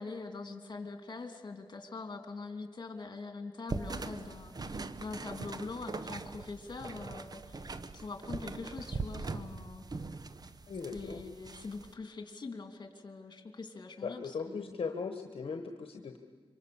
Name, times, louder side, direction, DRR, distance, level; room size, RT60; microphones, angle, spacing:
voice 1, 0.0-7.6 7.9-10.2 10.9-14.8, left 3 dB, 45° left, 6 dB, 2.8 m, -43 dB
sound 1, 3.7-11.9, right 3 dB, 40° right, 1.0 m, -41 dB
voice 2, 10.7-11.2 14.0-16.2, left 5 dB, 65° left, 6 dB, 1.3 m, -38 dB
26.5 x 24.0 x 7.0 m, 1.5 s
wide cardioid pair, 100°, 10 cm